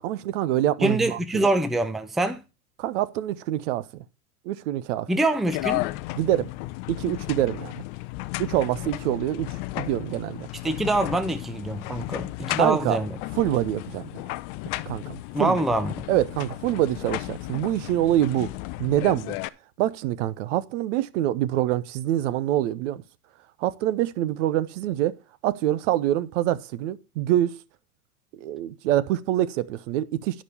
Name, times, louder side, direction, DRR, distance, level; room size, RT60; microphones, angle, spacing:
voice 1, 0.0-1.5 2.8-4.0 4.5-5.1 6.2-6.5 6.9-7.7 8.4-10.5 12.6-13.0 13.4-14.1 14.9-15.6 16.1-18.5 18.8-19.4 19.8-23.0 23.6-25.2 25.4-27.6 28.4-30.4, right 13 dB, 55° right, 0.9 m, -25 dB
voice 2, 0.8-2.4 5.1-5.8 10.6-13.1 15.3-16.0, right 2 dB, ahead, 0.6 m, -24 dB
sound 1, 5.5-19.5, left 18 dB, 40° left, 0.6 m, -34 dB
11.5 x 5.2 x 7.0 m
hypercardioid pair, 115°, 44 cm